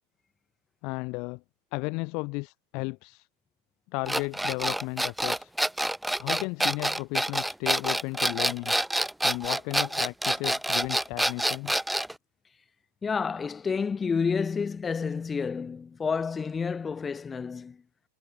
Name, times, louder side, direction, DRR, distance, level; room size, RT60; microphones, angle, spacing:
voice 1, 0.8-1.4 1.7-3.3 3.9-5.5 6.2-8.7 9.2-11.7, left 29 dB, 45° left, 0.5 m, -34 dB
sound 1, 4.1-12.1, right 1 dB, 5° right, 1.1 m, -27 dB
voice 2, 13.0-17.8, left 5 dB, 15° left, 1.9 m, -29 dB
figure-of-eight pair, 90°, 0 cm